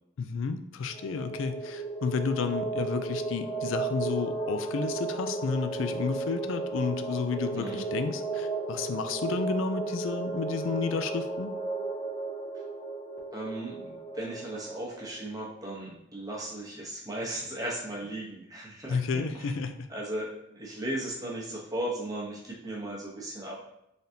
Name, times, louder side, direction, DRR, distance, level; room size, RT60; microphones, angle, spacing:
voice 1, 0.2-11.5 18.9-19.9, left 5 dB, 70° left, 10 dB, 0.3 m, -31 dB
sound 1, 0.9-15.2, right 3 dB, 10° left, 0.9 m, -34 dB
voice 2, 13.3-19.5 19.9-23.6, right 1 dB, 20° right, -4 dB, 0.9 m, -36 dB
3.9 x 3.4 x 2.7 m, 0.80 s
head